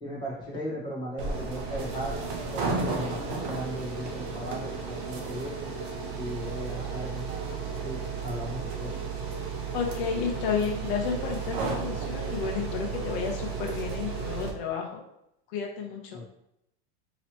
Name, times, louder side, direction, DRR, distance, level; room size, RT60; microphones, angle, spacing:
voice 1, 0.0-2.2 2.5-5.7 6.2-7.3 7.8-8.9 16.1-16.3, equal, 15° left, -5 dB, 1.0 m, -37 dB
sound 1, 1.2-14.5, right 5 dB, 25° right, 0.3 m, -33 dB
voice 2, 9.7-15.0 15.5-16.2, left 6 dB, 55° left, 0 dB, 0.9 m, -31 dB
3.0 x 2.9 x 4.3 m, 0.79 s
supercardioid pair, 175°, 32 cm